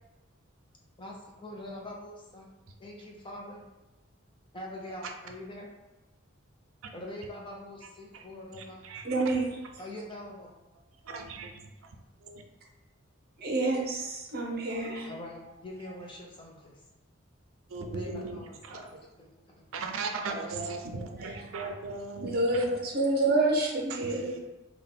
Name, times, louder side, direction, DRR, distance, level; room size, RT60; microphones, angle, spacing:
voice 1, 1.0-2.5 2.8-3.6 4.5-5.7 6.9-8.8 9.8-10.5 15.0-16.8 17.9-18.5 19.2-19.3 19.6-19.9 20.2-20.3, left 1 dB, 25° left, -1 dB, 0.6 m, -43 dB
voice 2, 8.5-9.2 11.0-11.6 12.2-12.4 17.7-18.4 18.6-18.8 19.7-22.7 23.9-24.4, right 4 dB, 85° right, 4 dB, 0.4 m, -38 dB
voice 3, 9.0-9.5 13.4-15.1 18.7-18.9 21.2-21.5 22.2-24.4, right 2 dB, 50° right, 0 dB, 0.7 m, -28 dB
3.6 x 2.3 x 3.7 m, 1.1 s
head